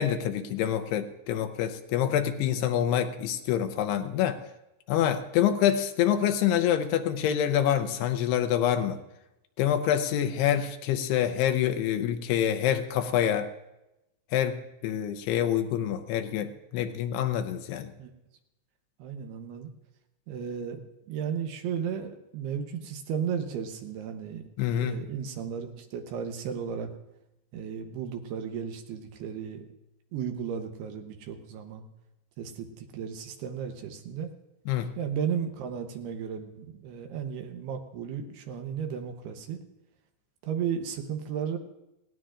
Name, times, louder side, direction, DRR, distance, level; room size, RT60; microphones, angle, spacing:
voice 1, 0.0-4.4 4.9-9.0 9.6-13.5 14.3-14.6 14.8-17.9 24.6-25.0 34.7-34.9, left 10 dB, 80° left, 7 dB, 2.5 m, -26 dB
voice 2, 19.0-19.7 20.3-20.8 21.1-24.4 24.8-26.9 27.5-29.7 30.1-31.9 32.4-34.3 35.0-39.6 40.4-41.6, right 7 dB, 70° right, 5 dB, 2.7 m, -34 dB
20.0 x 17.0 x 2.5 m, 0.91 s
omnidirectional pair, 5.3 m